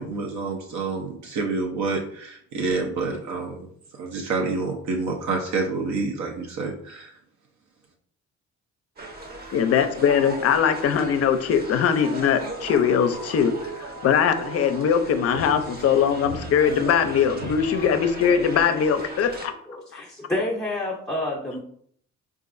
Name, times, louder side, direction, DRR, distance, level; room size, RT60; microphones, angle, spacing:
voice 1, 0.0-3.7 3.9-7.2, right 3 dB, 70° right, 0 dB, 0.6 m, -28 dB
sound 1, 9.0-19.5, right 2 dB, 30° right, 0.7 m, -36 dB
voice 2, 9.5-19.3 19.9-20.0, left 7 dB, 55° left, 9 dB, 0.5 m, -21 dB
voice 3, 19.7-21.6, left 1 dB, 10° left, -3 dB, 0.6 m, -29 dB
3.9 x 2.4 x 2.5 m, 0.63 s
cardioid pair, 90°, 30 cm